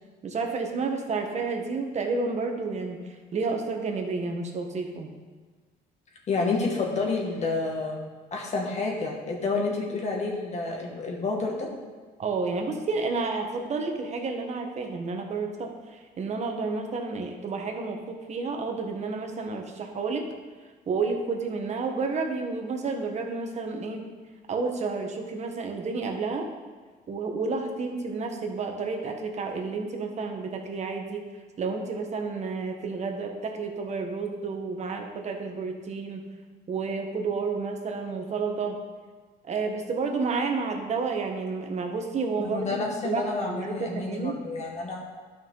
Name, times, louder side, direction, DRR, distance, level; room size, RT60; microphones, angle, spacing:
voice 1, 0.2-3.0 3.3-5.1 12.2-20.2 20.9-24.1 24.5-26.5 27.1-31.2 31.6-36.2 36.7-38.8 39.5-44.3, right 4 dB, 40° right, 3 dB, 1.4 m, -30 dB
voice 2, 6.3-8.0 8.3-11.7 42.4-45.0, left 3 dB, 40° left, -1 dB, 2.1 m, -29 dB
12.5 x 5.7 x 4.0 m, 1.4 s
cardioid pair, 110°, 17 cm